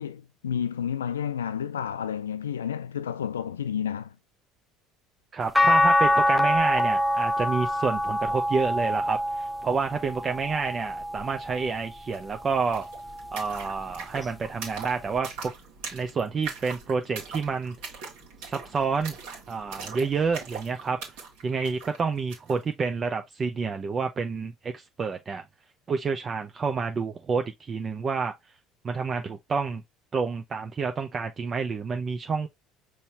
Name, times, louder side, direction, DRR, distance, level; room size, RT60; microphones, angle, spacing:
voice 1, 0.0-4.1, left 8 dB, 90° left, 0.4 m, -31 dB
voice 2, 5.3-12.9 13.3-15.5 15.9-18.0 18.5-19.2 19.5-21.0 21.4-25.4 25.9-28.3 28.8-29.8 30.1-32.5, right 5 dB, 35° right, 0.7 m, -29 dB
sound 1, 5.6-11.9 12.4-13.8 15.2-15.3, left 1 dB, 10° left, 0.5 m, -25 dB
sound 2, 12.1-12.2 12.4-22.6, right 5 dB, 70° right, 1.8 m, -41 dB
5.5 x 3.1 x 2.7 m
hypercardioid pair, 65°, 0 cm